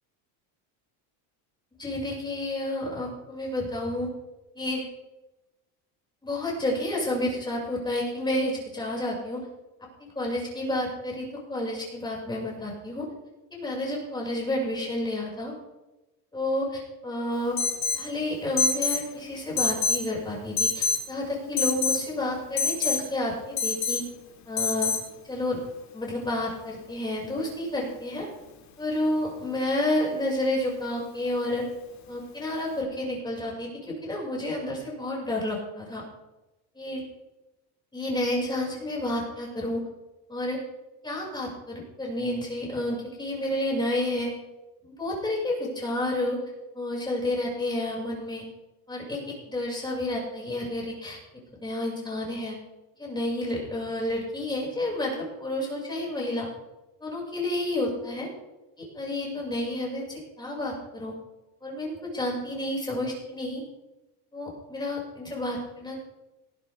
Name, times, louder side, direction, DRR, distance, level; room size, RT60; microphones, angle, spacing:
voice 1, 1.8-4.1 4.6-4.8 6.2-9.4 10.2-13.1 13.5-15.5 16.3-17.6 17.9-24.0 24.5-24.9 25.3-25.6 25.9-28.3 28.8-31.6 32.1-36.0 36.8-37.0 37.9-39.8 40.3-40.6 41.0-44.3 44.8-46.4 46.7-48.4 48.9-49.2 49.5-51.2 51.6-52.6 53.0-56.5 57.0-58.3 58.8-61.1 61.6-63.6 64.3-66.0, left 1 dB, 10° left, -3 dB, 5.8 m, -30 dB
Alarm, 17.6-18.1 18.6-19.0 19.6-20.1 20.6-21.0 21.6-22.0 22.6-23.0 23.6-24.0 24.6-25.0, left 5 dB, 40° left, 2.2 m, -25 dB
18.5 x 11.0 x 3.5 m, 1.0 s
cardioid pair, 135°, 44 cm